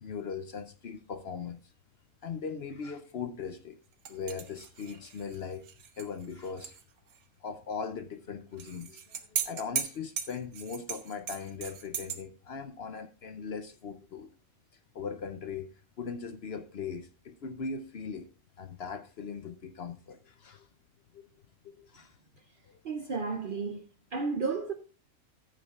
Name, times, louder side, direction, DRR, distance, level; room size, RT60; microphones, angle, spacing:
voice 1, 0.0-1.6 2.2-3.8 4.1-5.7 6.0-6.8 7.4-14.3 14.9-15.7 16.0-18.3 18.6-20.7 21.1-21.3 21.6-22.2 22.7-22.8 23.7-23.8, left 5 dB, 55° left, 0.8 m, -39 dB
sound 1, 4.1-6.8 7.1-7.2 8.6-12.2, right 7 dB, 90° right, 1.4 m, -37 dB
voice 2, 22.8-23.9 24.1-24.7, right 4 dB, 55° right, 0.6 m, -32 dB
14.0 x 8.4 x 2.4 m
omnidirectional pair, 1.5 m